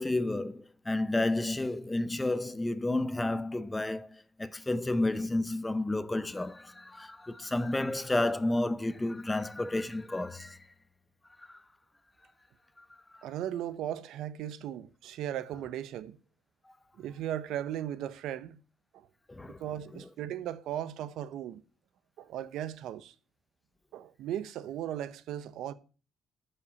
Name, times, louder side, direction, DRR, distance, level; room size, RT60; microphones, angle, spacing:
voice 1, 0.0-10.6 11.5-11.6 19.3-19.6, left 2 dB, 10° left, 0.6 m, -31 dB
voice 2, 13.2-16.2 17.0-18.6 18.9-19.1 19.5-21.6 22.2-23.1 23.9-25.7, right 11 dB, 80° right, 0.8 m, -37 dB
12.0 x 5.6 x 6.9 m
cardioid pair, 140°, 0 cm